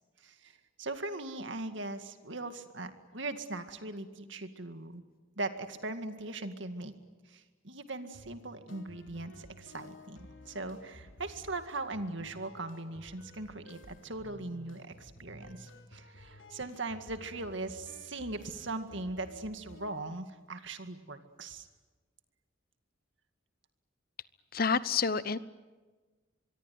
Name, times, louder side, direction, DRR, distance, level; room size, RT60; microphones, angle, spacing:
voice 1, 0.2-5.0 5.4-6.9 7.3-10.2 10.5-21.7, right 2 dB, 65° right, 8 dB, 2.1 m, -40 dB
sound 1, 8.1-20.1, left 1 dB, 70° left, 3.2 m, -53 dB
voice 2, 24.5-25.4, left 5 dB, 45° left, 16 dB, 0.9 m, -28 dB
25.5 x 23.0 x 9.4 m, 1.3 s
head